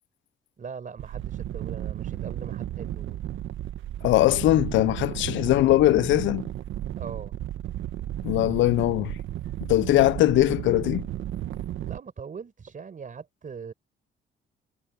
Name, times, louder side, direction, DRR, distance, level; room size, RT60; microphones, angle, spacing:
voice 1, 0.6-3.2 7.0-7.3 11.8-13.7, right 6 dB, 40° right, 4.7 m, -40 dB
sound 1, 1.0-12.0, right 12 dB, 80° right, 1.5 m, -34 dB
voice 2, 4.0-6.5 8.2-9.2 9.6-11.1, left 16 dB, 75° left, 0.4 m, -21 dB
cardioid pair, 90°, 20 cm